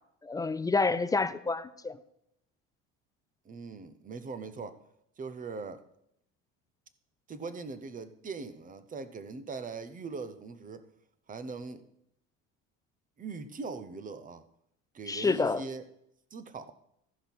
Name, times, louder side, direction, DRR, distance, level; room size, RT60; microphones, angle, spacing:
voice 1, 0.2-2.0 15.1-15.6, left 3 dB, 10° left, 13 dB, 0.4 m, -28 dB
voice 2, 3.4-4.8 5.2-5.8 7.3-10.8 11.3-11.8 13.2-14.4 14.9-15.8 16.3-16.7, right 4 dB, 25° right, 13 dB, 0.8 m, -41 dB
13.5 x 5.4 x 5.9 m, 0.75 s
cardioid pair, 120°, 31 cm